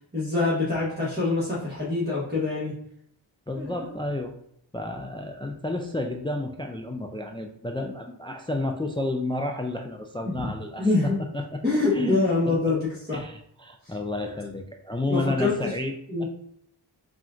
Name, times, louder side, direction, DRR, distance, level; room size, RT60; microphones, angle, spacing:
voice 1, 0.1-2.7 3.5-3.9 10.2-10.4 10.8-11.1 11.6-13.2 13.8-13.9 15.1-15.7 16.1-16.2, left 3 dB, 20° right, -9 dB, 1.4 m, -25 dB
voice 2, 3.5-4.3 4.7-11.6 11.9-12.2 12.5-12.6 13.1-16.2, left 2 dB, 10° left, 3 dB, 0.3 m, -31 dB
4.2 x 2.5 x 3.7 m, 0.70 s
wide cardioid pair, 60°, 47 cm